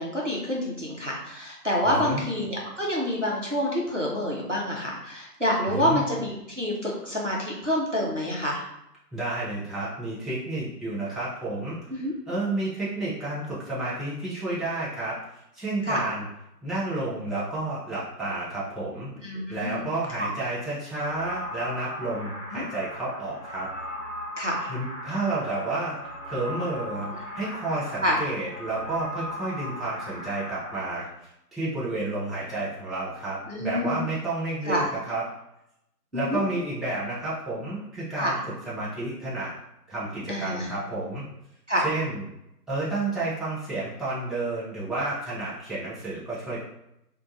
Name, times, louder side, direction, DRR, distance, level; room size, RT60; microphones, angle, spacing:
voice 1, 0.0-8.6 11.9-12.1 15.9-16.0 19.2-19.8 20.2-20.3 22.5-22.6 24.4-24.7 27.1-27.2 28.0-28.2 33.5-34.0 34.7-34.9 36.1-36.4 38.2-38.4 40.3-40.7 41.7-41.9, equal, 50° right, -3 dB, 0.5 m, -27 dB
voice 2, 1.8-2.2 5.7-6.1 9.1-11.8 12.3-15.2 15.5-16.3 16.6-19.1 19.5-23.7 24.7-31.1 31.5-35.2 36.1-38.4 38.6-39.5 39.9-41.2 41.8-42.2 42.7-46.6, right 2 dB, ahead, -9 dB, 0.5 m, -31 dB
sound 1, 20.9-30.8, equal, 45° left, 0.8 m, -38 dB
2.8 x 2.2 x 2.6 m, 0.82 s
figure-of-eight pair, 170°, 49 cm